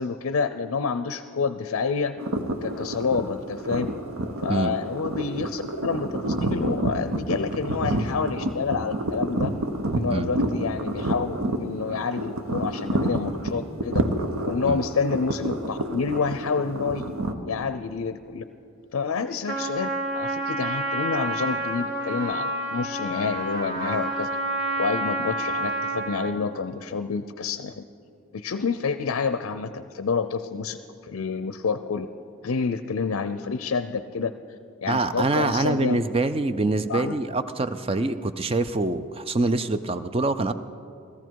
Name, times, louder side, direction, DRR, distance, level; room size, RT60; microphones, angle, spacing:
voice 1, 0.0-2.1 2.6-3.9 4.4-9.5 10.0-14.0 14.5-17.2 17.4-18.4 18.9-19.9 20.1-24.3 24.8-27.8 28.3-30.8 31.0-32.1 32.4-34.3 34.8-36.0 36.9-37.1, left 5 dB, 70° left, 11 dB, 0.5 m, -28 dB
sound 1, 2.2-17.3, right 1 dB, 80° right, 1.0 m, -28 dB
Trumpet, 19.5-26.4, right 1 dB, 50° right, 1.9 m, -29 dB
voice 2, 34.9-40.5, right 3 dB, 25° right, 11 dB, 0.4 m, -25 dB
17.5 x 14.0 x 4.6 m, 2.5 s
head